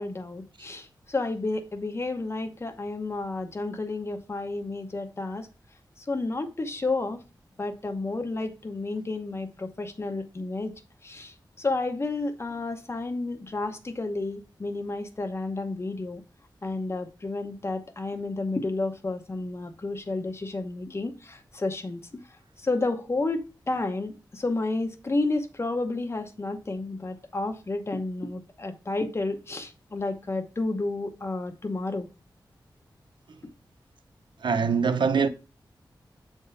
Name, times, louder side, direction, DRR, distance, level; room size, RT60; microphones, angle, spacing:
voice 1, 0.0-5.5 6.0-7.2 7.6-10.7 11.0-16.2 16.6-22.2 22.6-32.1, left 2 dB, 35° left, 0.9 m, -31 dB
voice 2, 34.4-35.3, right 5 dB, 75° right, 0.7 m, -23 dB
7.8 x 3.6 x 5.5 m
wide cardioid pair, 130°, 8 cm